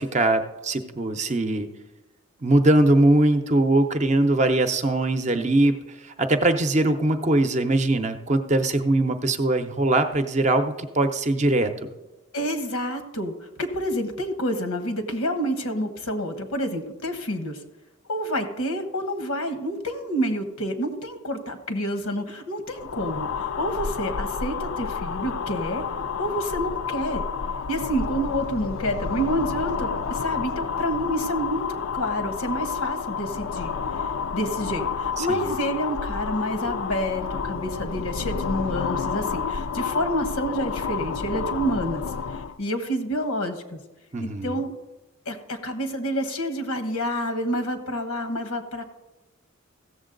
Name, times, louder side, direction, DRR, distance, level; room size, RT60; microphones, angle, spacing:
voice 1, 0.0-1.7 2.4-5.7 6.2-11.7 35.2-35.5 44.1-44.6, right 2 dB, 35° right, 8 dB, 0.6 m, -21 dB
voice 2, 12.3-17.6 18.1-25.8 26.2-27.2 27.7-34.0 34.3-42.0 42.3-43.8 44.2-44.7 45.3-48.8, equal, 90° left, 8 dB, 1.2 m, -28 dB
sound 1, 22.7-42.6, left 6 dB, 70° left, 0.4 m, -30 dB
15.5 x 7.2 x 3.9 m, 1.1 s
head